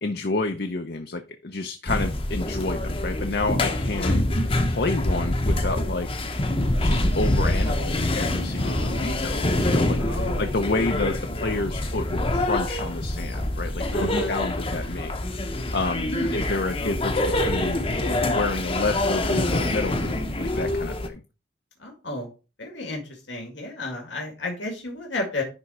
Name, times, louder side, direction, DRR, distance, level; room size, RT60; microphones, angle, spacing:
voice 1, 0.0-4.1 4.7-6.1 6.8-15.1 15.7-17.8 18.2-21.2, left 3 dB, 55° left, 6 dB, 0.7 m, -29 dB
sound 1, 1.9-21.1, left 1 dB, 30° left, 0.9 m, -25 dB
voice 2, 8.6-9.5 10.0-10.5 13.9-14.4 16.1-16.4 21.8-22.3 22.6-23.0 23.3-25.4, left 2 dB, 85° left, 1 dB, 2.1 m, -32 dB
10.5 x 3.7 x 4.3 m, 0.31 s
head